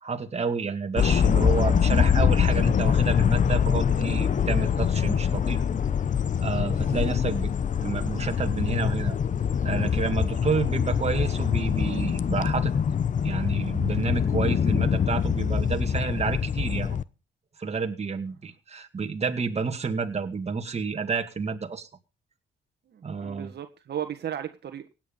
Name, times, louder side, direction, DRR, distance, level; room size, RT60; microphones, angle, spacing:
voice 1, 0.0-5.6 6.4-7.5 7.8-9.2 9.6-12.7 13.2-17.0 17.6-21.9 23.0-23.5, right 5 dB, 30° right, 2.2 m, -30 dB
sound 1, 1.0-17.0, left 7 dB, 40° left, 0.8 m, -24 dB
voice 2, 22.9-24.9, right 10 dB, 55° right, 1.6 m, -35 dB
17.0 x 9.3 x 5.4 m
cardioid pair, 90°, 20 cm